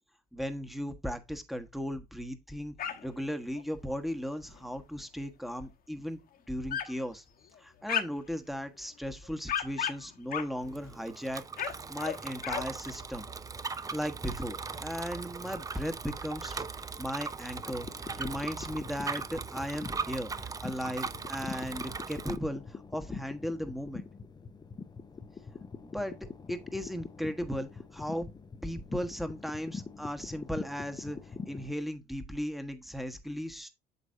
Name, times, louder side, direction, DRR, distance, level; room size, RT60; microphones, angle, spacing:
voice 1, 0.3-2.7 3.0-6.2 6.5-7.2 7.6-13.3 13.7-16.6 17.0-17.9 18.2-24.0 25.8-26.1 26.5-28.3 28.6-31.2 31.5-33.7, equal, ahead, 1.3 m, -36 dB
sound 1, 2.8-3.3 3.6-3.7 4.3-4.8 5.5-5.6 6.1-6.2 6.7-7.0 7.4-8.3 8.9-11.0 11.4-12.7 13.0-13.3 13.6-13.7 14.0-14.1 14.7-15.6 16.0-16.1 16.3-16.4 17.3-17.4 17.6-17.7 17.9-18.6, left 9 dB, 50° left, 1.2 m, -36 dB
Bicycle, 10.6-22.4, right 4 dB, 20° right, 0.5 m, -39 dB
sound 2, 17.6-31.7, left 5 dB, 20° left, 0.7 m, -44 dB
8.2 x 6.1 x 2.6 m
supercardioid pair, 90°, 19 cm